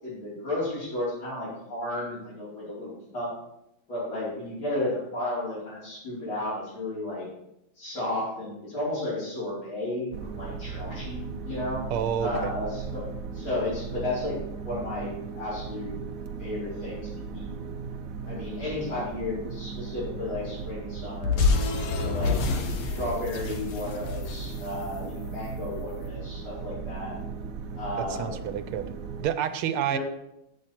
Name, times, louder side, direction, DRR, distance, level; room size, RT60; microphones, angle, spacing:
voice 1, 0.0-3.3 3.9-7.3 7.8-11.8 12.2-13.1 13.3-15.9 16.4-17.5 18.2-21.3 21.9-22.4 22.8-27.1 27.8-28.5 29.9-30.0, left 1 dB, 65° left, -13 dB, 5.8 m, -33 dB
sound 1, 10.1-29.3, right 5 dB, 65° right, 0.8 m, -37 dB
voice 2, 11.9-12.5 28.0-28.9 29.2-30.0, right 9 dB, 85° right, 11 dB, 1.7 m, -29 dB
sound 2, 21.2-25.6, left 4 dB, 90° left, 2.0 m, -28 dB
16.0 x 6.0 x 4.5 m, 0.83 s
omnidirectional pair, 2.3 m